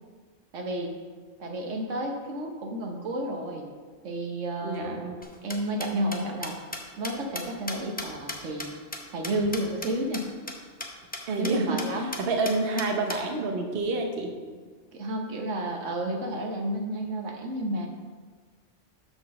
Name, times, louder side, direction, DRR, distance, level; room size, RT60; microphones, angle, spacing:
voice 1, 0.5-0.9 1.4-3.7 4.0-5.0 5.4-6.6 7.0-8.7 9.1-10.3 11.4-12.1 14.9-17.9, right 1 dB, 80° right, 2 dB, 1.3 m, -31 dB
voice 2, 4.6-5.2 11.3-14.3, right 3 dB, 55° right, 3 dB, 1.0 m, -28 dB
sound 1, 5.2-9.9 10.1-10.2 10.5-10.6 10.8-10.9 11.1-11.5 11.8-11.9 12.1-13.2, left 1 dB, 10° left, 0.5 m, -36 dB
6.2 x 5.1 x 6.2 m, 1.5 s
omnidirectional pair, 1.3 m